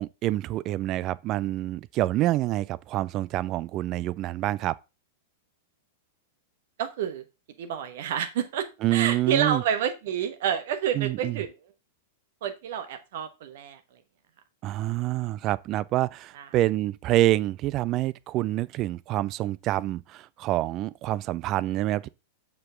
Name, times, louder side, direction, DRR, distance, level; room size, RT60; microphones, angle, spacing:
voice 1, 0.0-4.7 8.8-9.6 10.9-11.4 14.6-22.1, right 15 dB, 35° right, 0.4 m, -27 dB
voice 2, 6.8-7.2 7.6-8.7 8.9-11.5 12.4-14.0 16.3-16.5, right 9 dB, 55° right, 1.2 m, -29 dB
6.6 x 6.1 x 3.6 m
figure-of-eight pair, 95°, 0 cm